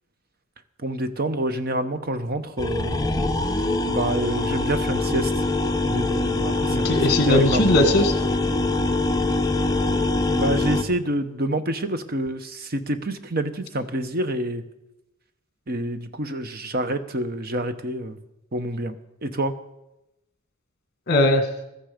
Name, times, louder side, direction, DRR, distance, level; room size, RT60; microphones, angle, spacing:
voice 1, 0.8-3.0 3.9-5.3 5.8-7.8 10.3-14.6 15.7-18.2 18.5-19.0 19.2-19.5, right 1 dB, 45° right, 10 dB, 1.0 m, -27 dB
sound 1, 2.6-10.8, left 2 dB, 20° left, 0.8 m, -23 dB
voice 2, 6.7-8.5 21.1-21.5, left 1 dB, 50° left, 6 dB, 1.9 m, -20 dB
15.0 x 13.0 x 5.1 m, 0.91 s
head